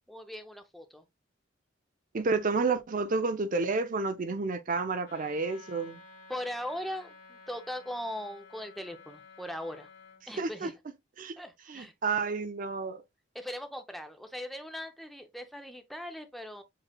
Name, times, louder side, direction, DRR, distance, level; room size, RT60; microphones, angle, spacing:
voice 1, 0.1-1.0 6.3-9.9 10.3-10.7 11.4-11.9 13.3-16.6, equal, ahead, 0.6 m, -39 dB
voice 2, 2.1-6.0 10.4-10.7 11.2-11.3 11.7-13.0, right 4 dB, 45° right, 0.5 m, -30 dB
Wind instrument woodwind instrument, 5.0-10.2, left 4 dB, 60° left, 2.1 m, -53 dB
7.4 x 3.2 x 2.3 m
head